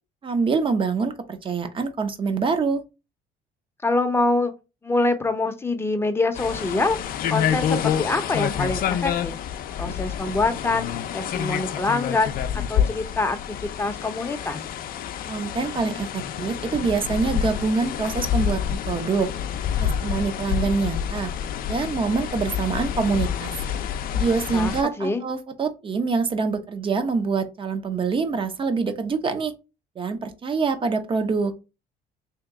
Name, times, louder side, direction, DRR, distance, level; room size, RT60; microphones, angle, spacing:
voice 1, 0.2-2.8 15.3-19.3 19.8-21.3 21.7-23.5 24.1-29.5 30.0-31.5, right 4 dB, 30° right, 0.6 m, -25 dB
voice 2, 3.8-4.5 4.8-9.3 9.8-10.9 11.1-13.4 13.8-14.6 24.5-25.2, left 2 dB, 15° left, 0.6 m, -25 dB
sound 1, 6.3-24.8, left 9 dB, 60° left, 0.5 m, -28 dB
3.0 x 2.9 x 3.5 m
cardioid pair, 110°, 17 cm